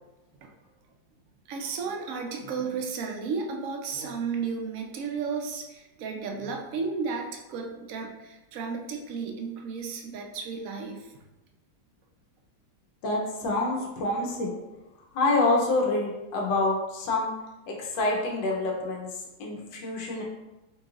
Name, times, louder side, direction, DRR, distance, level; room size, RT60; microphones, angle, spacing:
voice 1, 1.5-11.1, right 5 dB, 75° right, 2 dB, 0.7 m, -33 dB
voice 2, 13.0-14.6 15.1-17.3 17.7-19.1 19.4-20.2, left 2 dB, 75° left, -1 dB, 1.4 m, -27 dB
5.4 x 3.1 x 2.4 m, 1.0 s
omnidirectional pair, 2.0 m